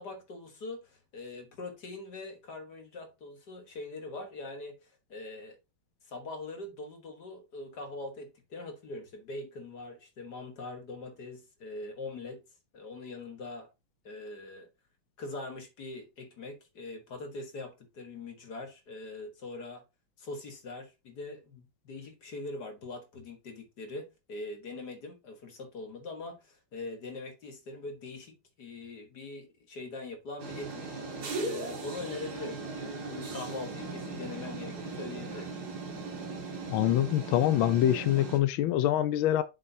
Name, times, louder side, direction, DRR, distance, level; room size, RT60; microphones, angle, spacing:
voice 1, 0.0-5.6 6.0-12.4 12.7-13.7 14.0-14.7 15.2-19.8 20.2-31.0 31.4-35.5, left 2 dB, 55° left, 1.8 m, -42 dB
sound 1, 30.4-38.4, right 3 dB, 50° right, 2.2 m, -38 dB
voice 2, 36.7-39.4, left 12 dB, 75° left, 1.4 m, -25 dB
7.9 x 6.2 x 2.7 m
omnidirectional pair, 2.3 m